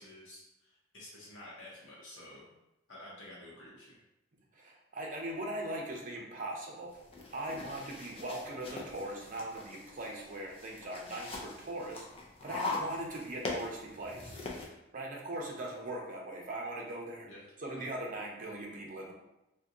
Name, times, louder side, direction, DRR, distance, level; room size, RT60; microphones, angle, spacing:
voice 1, 0.0-2.5 2.9-4.0 12.4-12.7 17.3-17.4 17.7-17.8, left 1 dB, 70° left, -6 dB, 0.7 m, -51 dB
voice 2, 4.5-7.0 7.3-12.0 12.4-14.4 14.9-17.3 17.6-19.1, right 1 dB, 45° right, -1 dB, 0.6 m, -40 dB
sound 1, 6.9-14.7, left 3 dB, 30° left, 0.5 m, -42 dB
2.7 x 2.2 x 3.6 m, 0.89 s
head